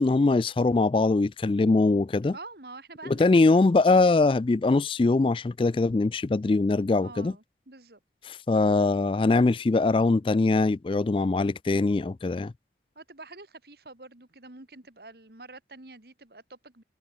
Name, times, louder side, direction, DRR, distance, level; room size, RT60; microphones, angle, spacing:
voice 1, 0.0-2.3 3.1-7.3 8.3-12.5, left 3 dB, 30° left, 0.3 m, -22 dB
voice 2, 2.3-3.8 6.8-8.0 13.0-16.8, right 3 dB, 60° right, 2.3 m, -47 dB
head